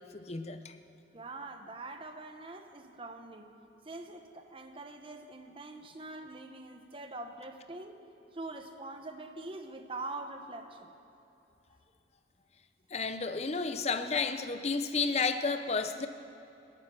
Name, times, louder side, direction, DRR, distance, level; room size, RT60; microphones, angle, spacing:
voice 1, 0.1-0.8 12.9-16.1, left 4 dB, 35° left, 9 dB, 0.6 m, -32 dB
voice 2, 1.1-3.5 3.8-8.0 8.3-10.9, right 2 dB, 30° right, 6 dB, 0.9 m, -44 dB
25.0 x 8.9 x 6.1 m, 2.9 s
head